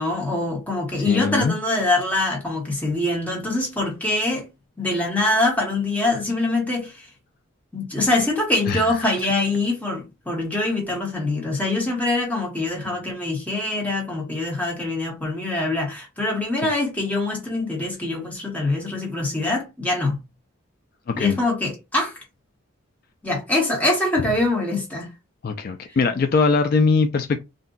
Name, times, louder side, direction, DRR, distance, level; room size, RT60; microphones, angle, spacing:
voice 1, 0.0-4.5 4.8-7.1 7.7-20.2 21.1-22.1 23.2-25.1, left 2 dB, 5° left, 1.0 m, -24 dB
voice 2, 1.1-1.5 8.7-9.0 12.8-12.9 21.1-21.4 25.4-27.4, left 4 dB, 45° left, 0.3 m, -21 dB
2.5 x 2.2 x 3.7 m
head